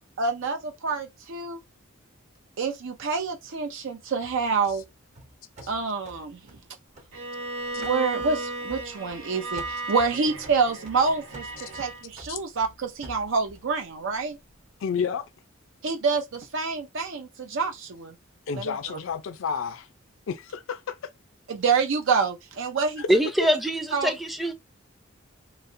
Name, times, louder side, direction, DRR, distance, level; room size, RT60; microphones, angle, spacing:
voice 1, 0.2-1.6 2.6-4.8 5.7-6.4 7.8-14.4 15.8-18.1 18.5-18.7 21.5-23.0 23.9-24.1, right 4 dB, 65° right, 0.5 m, -27 dB
sound 1, 4.2-7.5 7.8-9.3 9.6-13.7, right 1 dB, 35° right, 0.8 m, -48 dB
Bowed string instrument, 7.1-12.0, right 2 dB, 85° right, 1.2 m, -35 dB
voice 2, 14.8-15.3 18.5-19.9 20.3-21.1 23.0-23.1, left 6 dB, 70° left, 0.4 m, -30 dB
voice 3, 23.1-24.5, equal, ahead, 0.5 m, -23 dB
4.0 x 2.1 x 2.6 m
head